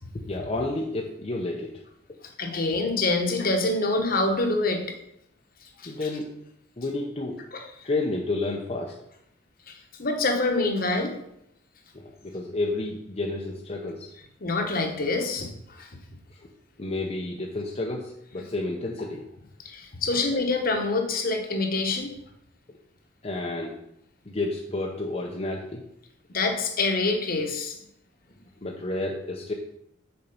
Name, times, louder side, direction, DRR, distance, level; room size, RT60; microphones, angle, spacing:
voice 1, 0.1-1.7 5.9-6.3 6.8-7.4 7.8-9.0 11.9-14.1 16.4-16.5 16.8-19.2 23.2-23.8 24.3-25.8 28.6-29.5, left 2 dB, 35° left, -1 dB, 0.7 m, -30 dB
voice 2, 2.4-4.9 5.8-5.9 7.5-7.6 9.7-11.1 14.4-15.5 15.8-15.9 19.6-22.1 26.3-27.8, left 3 dB, 50° left, 3 dB, 1.1 m, -26 dB
6.9 x 4.5 x 5.3 m, 0.78 s
head